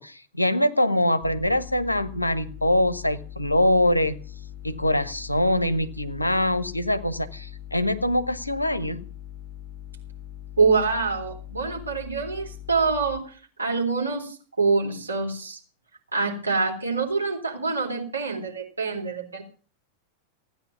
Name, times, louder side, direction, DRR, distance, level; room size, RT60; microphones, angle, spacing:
voice 1, 0.0-4.2 4.6-9.0, left 1 dB, 85° left, 13 dB, 1.1 m, -23 dB
sound 1, 1.2-13.2, left 11 dB, 20° left, 2.3 m, -41 dB
voice 2, 10.6-13.3 13.6-15.6 16.1-19.4, right 4 dB, 80° right, 1 dB, 3.7 m, -25 dB
16.0 x 9.6 x 7.1 m, 0.40 s
figure-of-eight pair, 90°, 0 cm